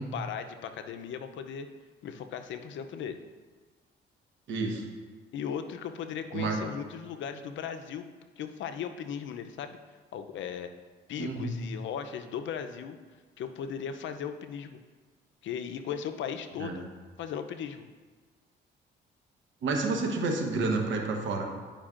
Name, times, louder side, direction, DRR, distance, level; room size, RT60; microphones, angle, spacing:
voice 1, 0.0-1.7 2.0-3.2 5.3-8.1 8.4-9.8 10.1-10.7 11.1-13.0 13.4-14.8 15.4-16.9 17.2-17.9, left 7 dB, 70° left, 8 dB, 0.5 m, -37 dB
voice 2, 4.5-4.9 6.3-6.6 11.2-11.5 16.6-16.8 19.6-21.4, right 3 dB, 75° right, 2 dB, 1.1 m, -29 dB
10.0 x 5.1 x 2.5 m, 1.4 s
cardioid pair, 90°, 20 cm